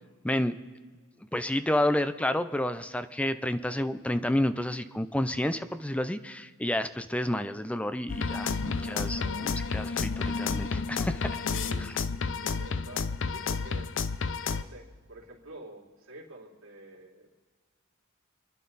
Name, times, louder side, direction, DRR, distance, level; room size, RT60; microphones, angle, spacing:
voice 1, 0.2-0.6 1.3-11.3, left 1 dB, 5° left, 11 dB, 0.6 m, -30 dB
sound 1, 8.1-14.6, left 4 dB, 65° left, 0.7 m, -31 dB
voice 2, 8.6-9.5 11.5-11.9 12.4-13.9 14.5-17.3, right 1 dB, 70° right, -3 dB, 3.4 m, -48 dB
28.0 x 10.5 x 4.1 m, 1.5 s
head